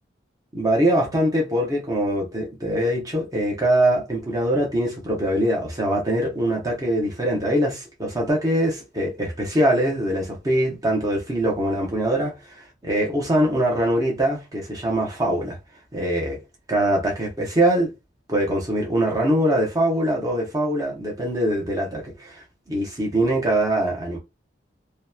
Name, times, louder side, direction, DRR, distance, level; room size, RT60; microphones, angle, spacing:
voice 1, 0.5-15.6 15.9-16.4 16.7-17.9 18.3-22.4 22.7-24.2, right 1 dB, 20° right, 0.7 m, -23 dB
2.8 x 2.1 x 2.3 m
head